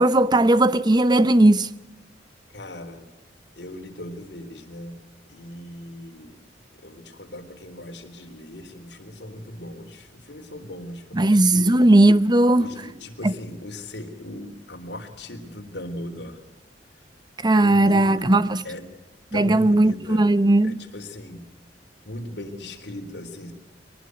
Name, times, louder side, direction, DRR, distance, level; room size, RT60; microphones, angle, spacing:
voice 1, 0.0-1.7 11.1-12.7 13.2-13.3 17.4-18.6 19.3-20.8, right 1 dB, 25° right, 0.8 m, -17 dB
voice 2, 2.5-3.1 3.6-5.0 5.3-6.4 6.7-11.8 12.6-16.4 17.5-18.9 19.3-20.3 20.6-21.5 22.1-23.5, left 1 dB, 70° left, 3.6 m, -38 dB
23.5 x 19.5 x 9.4 m
head